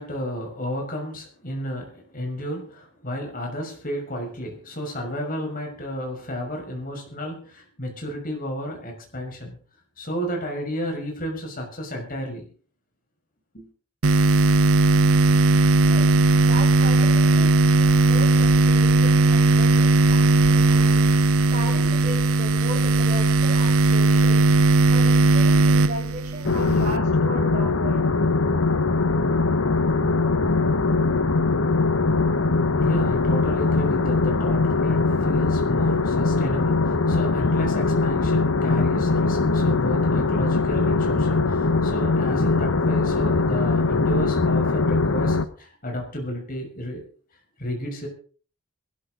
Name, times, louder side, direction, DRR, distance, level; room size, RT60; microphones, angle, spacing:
voice 1, 0.0-9.6 10.0-12.5 13.5-13.7 32.7-47.1 47.6-48.1, equal, 40° left, 1 dB, 6.1 m, -32 dB
sound 1, 14.0-27.0, right 2 dB, 85° right, 0.8 m, -18 dB
voice 2, 15.8-21.1 21.5-24.4 24.9-28.0, right 1 dB, 35° right, -3 dB, 6.7 m, -36 dB
sound 2, 26.4-45.4, left 3 dB, 65° left, 1.1 m, -21 dB
21.5 x 13.0 x 4.0 m, 0.41 s
head